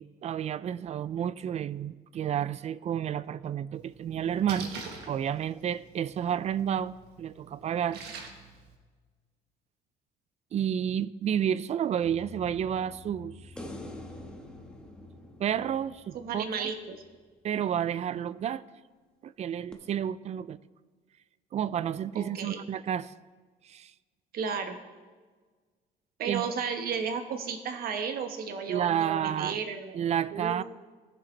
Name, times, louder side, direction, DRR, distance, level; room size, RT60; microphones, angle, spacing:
voice 1, 0.0-4.7 5.0-8.0 10.5-13.5 15.4-16.7 17.4-18.6 19.2-20.6 21.5-23.1 23.6-23.9 26.3-26.5 28.7-29.6 29.9-30.6, right 9 dB, 40° right, 18 dB, 0.4 m, -30 dB
Splash splatter, 3.7-8.8, right 4 dB, 75° right, 1.5 m, -46 dB
sound 1, 12.0-17.7, left 5 dB, 30° left, 1.4 m, -52 dB
sound 2, 13.6-16.9 19.7-19.8, left 1 dB, 5° left, 1.4 m, -45 dB
voice 2, 16.1-17.0 22.1-22.6 24.3-24.8 26.2-30.0 30.3-30.6, right 6 dB, 60° right, 6 dB, 1.3 m, -33 dB
18.5 x 7.3 x 3.3 m, 1.4 s
cardioid pair, 110°, 17 cm